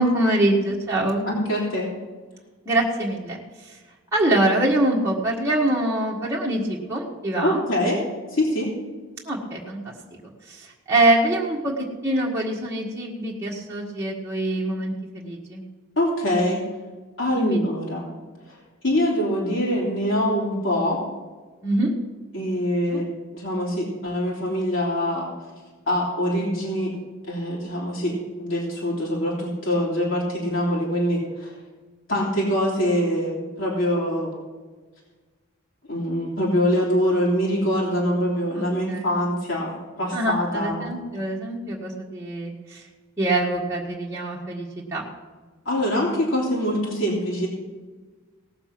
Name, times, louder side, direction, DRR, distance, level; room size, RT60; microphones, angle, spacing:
voice 1, 0.0-1.3 2.6-3.4 3.6-3.8 4.1-7.6 9.2-9.9 10.5-15.6 17.3-17.6 21.6-21.9 22.9-23.0 38.5-39.1 40.1-42.8 43.2-45.1, right 1 dB, 15° right, -5 dB, 1.6 m, -24 dB
voice 2, 1.3-1.9 7.4-8.0 8.3-8.7 16.0-16.6 17.2-18.1 18.5-18.6 18.8-21.0 22.3-25.3 25.9-26.9 27.3-31.5 32.1-34.3 35.9-40.9 45.6-47.5, equal, 65° left, -4 dB, 3.1 m, -24 dB
18.0 x 7.0 x 5.9 m, 1.3 s
head